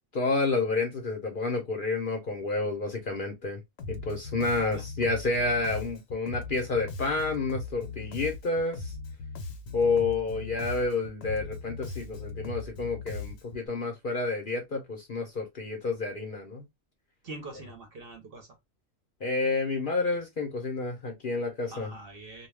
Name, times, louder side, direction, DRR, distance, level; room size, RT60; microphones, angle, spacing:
voice 1, 0.1-3.6 3.9-8.9 9.7-16.6 19.2-21.9, left 3 dB, 50° left, 0.7 m, -29 dB
Bass guitar, 3.8-13.7, left 4 dB, 75° left, 1.0 m, -39 dB
voice 2, 17.2-18.5 21.7-22.5, right 2 dB, 55° right, 0.7 m, -43 dB
2.3 x 2.2 x 3.2 m
omnidirectional pair, 1.4 m